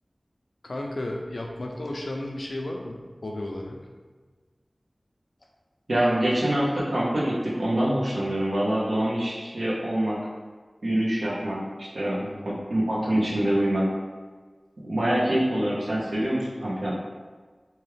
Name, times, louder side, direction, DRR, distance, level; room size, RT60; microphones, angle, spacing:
voice 1, 0.6-3.9 12.2-12.5, left 1 dB, 90° left, 0 dB, 0.4 m, -34 dB
voice 2, 5.9-10.2 10.8-13.9 14.8-17.0, right 1 dB, 90° right, -5 dB, 0.7 m, -25 dB
2.9 x 2.3 x 3.2 m, 1.4 s
wide cardioid pair, 50°, 0 cm